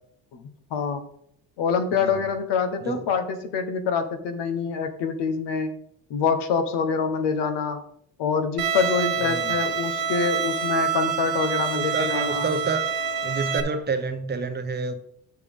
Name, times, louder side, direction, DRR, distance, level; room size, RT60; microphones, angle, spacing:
voice 1, 0.7-1.1 1.6-5.7 6.1-7.8 8.2-12.5, left 6 dB, 85° left, 1.2 m, -25 dB
Bowed string instrument, 8.6-13.6, right 7 dB, 60° right, 1.0 m, -26 dB
voice 2, 9.2-9.6 11.7-12.9 13.2-14.9, right 4 dB, 25° right, 0.7 m, -29 dB
8.2 x 6.9 x 3.6 m
cardioid pair, 145°, 41 cm